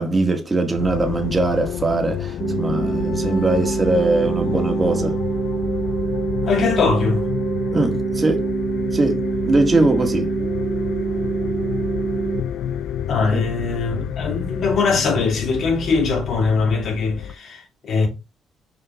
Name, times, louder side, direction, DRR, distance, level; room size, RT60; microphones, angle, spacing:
voice 1, 0.0-5.2 7.7-8.5 8.9-10.3 13.3-13.4, right 2 dB, 25° right, 1.8 m, -21 dB
sound 1, 0.8-17.4, left 10 dB, 80° left, 0.5 m, -29 dB
sound 2, 2.4-12.4, right 5 dB, 60° right, 0.6 m, -25 dB
voice 2, 6.4-7.3 13.1-18.1, left 4 dB, 60° left, 3.1 m, -21 dB
6.3 x 4.5 x 3.6 m
cardioid pair, 90°, 0 cm